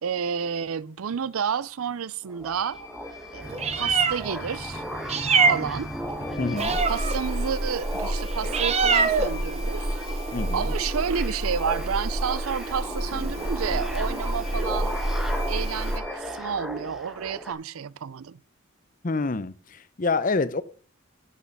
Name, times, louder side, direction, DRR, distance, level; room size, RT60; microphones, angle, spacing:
voice 1, 0.0-2.9 3.3-4.8 5.5-5.9 6.8-10.0 10.5-15.0 15.5-18.4, right 7 dB, 85° right, 0.5 m, -30 dB
sound 1, 2.2-17.5, equal, ahead, 1.1 m, -37 dB
sound 2, 2.5-16.2, left 6 dB, 15° left, 1.6 m, -45 dB
Meow, 3.4-16.0, right 3 dB, 30° right, 0.9 m, -27 dB
voice 2, 6.4-6.8 10.3-10.7 19.0-20.6, left 3 dB, 40° left, 0.6 m, -27 dB
11.5 x 6.4 x 5.3 m
head